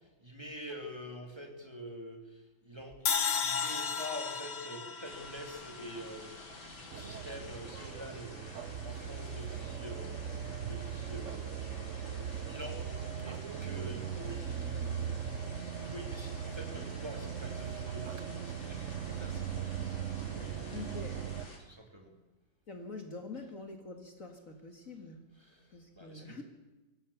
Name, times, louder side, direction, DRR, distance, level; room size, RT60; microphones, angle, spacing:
voice 1, 0.2-2.2 2.6-3.0 3.4-10.2 10.6-12.8 13.2-15.3 15.8-19.7 20.3-20.5 21.7-22.1 25.4-25.5 26.0-26.4, equal, 15° right, 2 dB, 3.1 m, -46 dB
sound 1, 3.1-6.3, left 6 dB, 60° left, 2.0 m, -34 dB
sound 2, 5.0-21.6, left 2 dB, 85° left, 5.0 m, -50 dB
sound 3, 6.9-21.4, right 8 dB, 55° right, 0.9 m, -39 dB
voice 2, 20.7-21.2 22.7-25.2 25.7-26.4, left 3 dB, 45° left, 4 dB, 2.3 m, -45 dB
24.5 x 17.5 x 7.2 m, 1.1 s
omnidirectional pair, 2.1 m